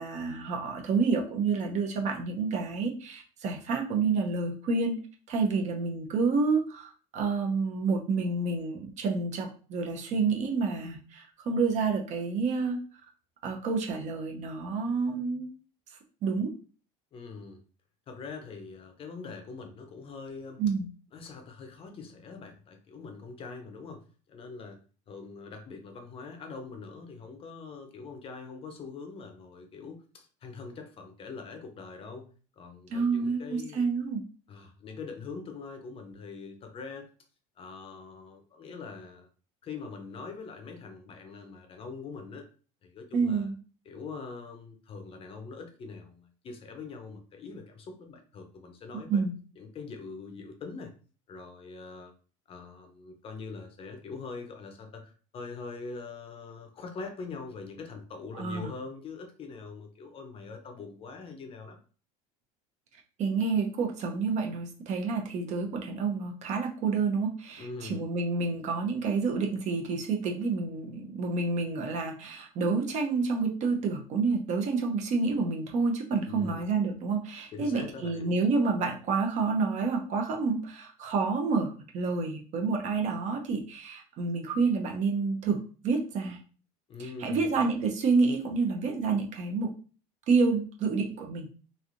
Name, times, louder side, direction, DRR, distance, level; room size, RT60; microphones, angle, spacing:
voice 1, 0.0-5.0 5.3-12.8 13.4-15.5 16.2-16.5 20.6-20.9 32.9-34.2 43.1-43.6 49.1-49.3 58.4-58.7 63.2-86.4 87.2-89.7 90.3-91.6, right 4 dB, 45° right, 2 dB, 0.7 m, -29 dB
voice 2, 17.1-17.6 18.1-20.6 21.1-24.8 25.1-32.3 32.6-33.9 34.5-37.1 37.6-39.3 39.6-42.5 42.8-43.5 43.9-49.2 49.6-50.9 51.3-52.1 52.5-61.8 67.6-68.0 76.2-76.6 77.5-78.3 86.9-87.5, left 4 dB, 35° left, 5 dB, 0.6 m, -43 dB
3.2 x 2.6 x 2.5 m, 0.39 s
supercardioid pair, 120°, 17 cm